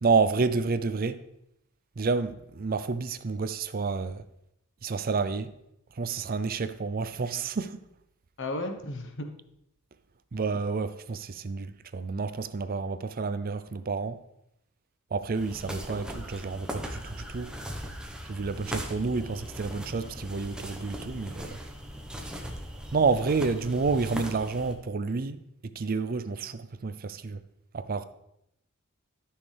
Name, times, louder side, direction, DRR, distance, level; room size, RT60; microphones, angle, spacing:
voice 1, 0.0-1.2 2.0-4.2 4.8-5.5 6.0-7.8 10.3-14.2 15.1-17.5 18.3-21.6 22.9-27.4 27.7-28.0, right 4 dB, 45° right, 0.5 m, -29 dB
voice 2, 8.4-9.3, left 1 dB, 60° left, 1.2 m, -34 dB
sound 1, 15.3-24.7, equal, 5° right, 1.0 m, -39 dB
13.0 x 6.3 x 3.4 m
head